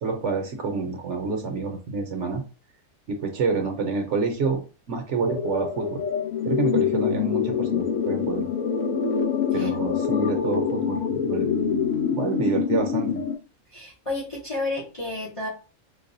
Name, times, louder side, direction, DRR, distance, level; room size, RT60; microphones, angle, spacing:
voice 1, 0.0-2.4 3.1-4.6 4.9-6.0 6.4-8.5 9.5-13.2, right 4 dB, 60° right, 3 dB, 0.9 m, -28 dB
sound 1, 5.3-13.3, left 7 dB, 75° left, 1.1 m, -25 dB
voice 2, 13.7-15.5, left 2 dB, 30° left, -3 dB, 0.7 m, -31 dB
5.2 x 2.2 x 2.5 m, 0.33 s
omnidirectional pair, 1.5 m